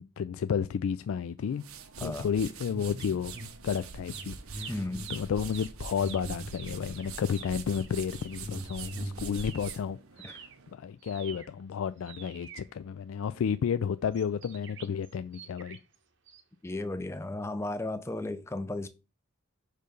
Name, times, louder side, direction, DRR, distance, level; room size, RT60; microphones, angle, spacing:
voice 1, 0.0-1.6 2.0-3.3 3.6-4.8 5.1-15.8, left 7 dB, 75° left, 0.3 m, -32 dB
sound 1, 1.4-10.7, right 5 dB, 90° right, 0.8 m, -44 dB
sound 2, 2.7-3.5 3.9-7.0 7.6-7.8 8.1-9.4, right 1 dB, 20° right, 0.8 m, -42 dB
sound 3, 3.0-3.8 4.1-9.8 10.1-13.4 14.1-15.9 16.3-16.4, right 7 dB, 55° right, 0.8 m, -48 dB
voice 2, 4.7-5.1 10.2-10.4 16.6-18.9, left 2 dB, 10° left, 0.4 m, -35 dB
6.5 x 3.2 x 5.2 m
head